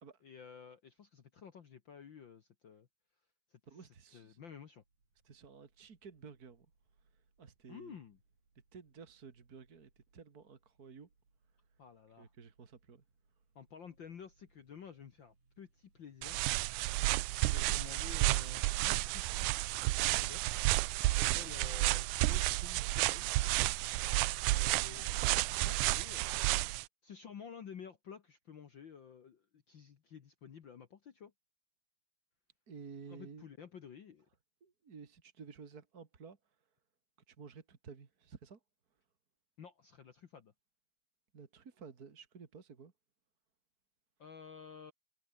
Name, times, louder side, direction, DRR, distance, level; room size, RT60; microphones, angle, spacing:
voice 1, 0.2-2.9 3.5-4.8 7.7-8.2 11.8-12.3 13.5-16.4 17.4-19.5 20.0-20.6 21.2-23.3 24.5-26.4 27.0-31.3 33.1-34.3 39.6-40.5 44.2-44.9, left 7 dB, 80° left, 1.0 m, -52 dB
voice 2, 3.7-4.4 5.2-6.7 7.4-8.0 8.7-11.1 12.2-13.0 17.4-17.8 21.1-21.7 24.6-25.1 32.7-33.5 34.6-36.4 37.3-38.6 41.3-42.9, right 5 dB, 35° right, 1.7 m, -53 dB
sound 1, 4.8-21.4, right 3 dB, 55° right, 8.8 m, -74 dB
sound 2, 16.2-26.8, right 20 dB, 85° right, 1.8 m, -31 dB
omnidirectional pair, 4.3 m